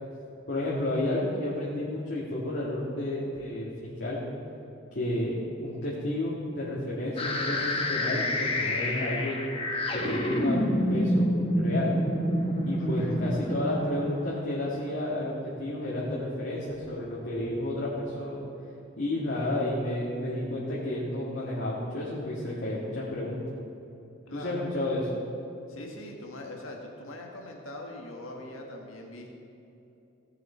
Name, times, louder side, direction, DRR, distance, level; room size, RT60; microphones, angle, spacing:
voice 1, 0.5-4.2 4.9-5.3 5.6-9.4 9.9-11.3 11.6-11.9 12.7-18.4 19.0-23.4 24.3-25.0, left 1 dB, 55° left, -7 dB, 1.9 m, -31 dB
sound 1, 7.2-15.1, equal, 30° left, 1.2 m, -28 dB
voice 2, 12.8-13.2 24.3-24.7 25.7-29.3, left 1 dB, 90° left, 1 dB, 1.8 m, -42 dB
17.0 x 7.6 x 4.4 m, 2.9 s
head